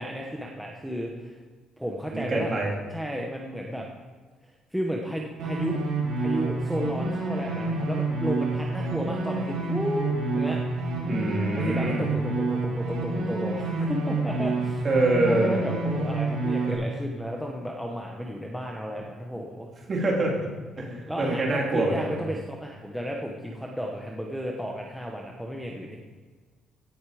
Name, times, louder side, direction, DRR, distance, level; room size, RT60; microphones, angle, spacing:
voice 1, 0.0-1.4 1.8-2.5 2.9-3.9 4.7-5.9 6.2-10.6 11.5-19.7 20.8-26.0, equal, ahead, -1 dB, 1.0 m, -33 dB
voice 2, 2.1-2.7 11.1-12.0 14.8-15.6 19.9-20.3 20.8-20.9 21.2-22.2, right 2 dB, 30° right, -1 dB, 3.0 m, -25 dB
sound 1, 5.4-16.7, right 2 dB, 75° right, 4.3 m, -28 dB
17.0 x 8.1 x 5.0 m, 1.4 s
cardioid pair, 165°, 0 cm